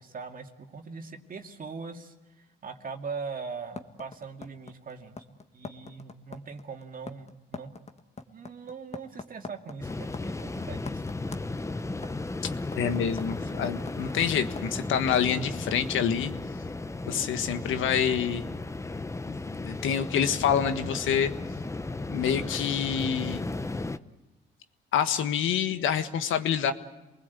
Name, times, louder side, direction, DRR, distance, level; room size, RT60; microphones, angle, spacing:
voice 1, 0.0-7.7 8.3-11.0, right 5 dB, 45° right, 4 dB, 2.5 m, -41 dB
sound 1, 3.8-14.8, left 4 dB, 35° left, 1.6 m, -42 dB
sound 2, 9.8-24.0, left 2 dB, 15° left, 0.9 m, -35 dB
voice 2, 12.7-16.3 17.1-18.4 19.3-21.3 22.1-23.4 24.9-26.7, left 8 dB, 80° left, 9 dB, 1.6 m, -27 dB
28.5 x 20.0 x 8.3 m, 1.1 s
cardioid pair, 90°, 20 cm